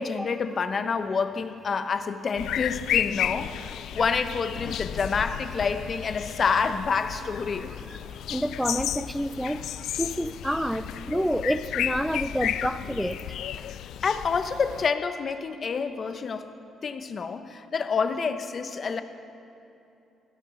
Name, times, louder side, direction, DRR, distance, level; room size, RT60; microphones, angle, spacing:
voice 1, 0.0-7.7 14.0-16.5 16.8-19.0, left 5 dB, 45° left, 1.0 m, -28 dB
sound 1, 2.4-14.9, left 11 dB, 80° left, 0.3 m, -33 dB
voice 2, 8.3-9.6 10.0-13.2, equal, ahead, 0.6 m, -28 dB
17.0 x 11.5 x 6.3 m
cardioid pair, 90°, 0 cm